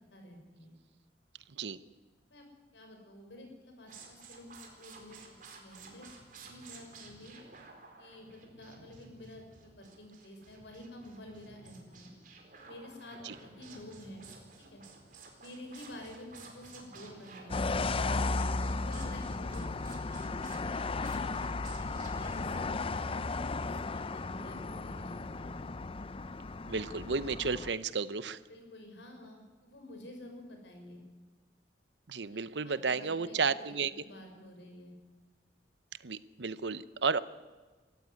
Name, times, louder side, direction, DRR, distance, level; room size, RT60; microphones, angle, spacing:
voice 1, 0.1-0.7 2.3-2.4 2.7-6.1 6.3-7.3 8.0-12.1 12.5-14.3 14.6-14.8 15.4-17.7 18.0-18.1 18.4-19.8 20.0-20.7 21.7-25.6 28.5-31.0 32.3-34.9, left 1 dB, 90° left, 4 dB, 6.0 m, -50 dB
sound 1, 3.9-22.6, right 4 dB, 50° right, 4.5 m, -53 dB
sound 2, 17.5-27.7, left 3 dB, 30° left, 0.6 m, -35 dB
voice 2, 26.7-28.4 32.1-33.9 36.0-37.2, right 5 dB, 75° right, 15 dB, 0.8 m, -32 dB
22.5 x 14.5 x 9.7 m, 1.3 s
head